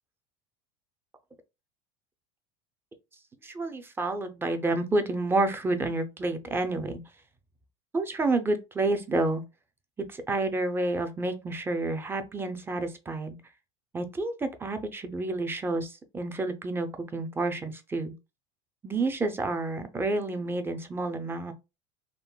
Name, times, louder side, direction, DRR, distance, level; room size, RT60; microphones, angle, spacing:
voice 1, 3.4-7.0 7.9-9.4 10.1-13.4 13.9-18.1 18.8-21.5, right 2 dB, 15° right, 0.4 m, -29 dB
3.6 x 2.1 x 2.2 m
supercardioid pair, 120°, 17 cm